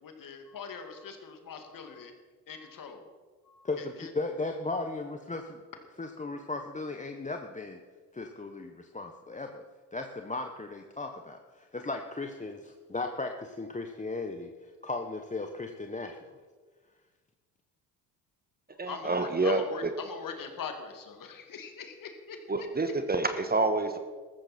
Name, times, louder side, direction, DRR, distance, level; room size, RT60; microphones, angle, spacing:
voice 1, 0.0-2.1 2.5-3.1 3.4-4.1 18.7-22.7, left 6 dB, 50° left, 5 dB, 2.4 m, -42 dB
voice 2, 3.6-5.6 6.0-7.8 8.1-9.6 9.9-14.5 14.8-16.4, left 3 dB, 15° left, 4 dB, 1.1 m, -36 dB
voice 3, 18.8-19.6 22.5-24.0, right 3 dB, 20° right, 8 dB, 1.4 m, -27 dB
14.0 x 14.0 x 4.4 m, 1.4 s
hypercardioid pair, 60°, 43 cm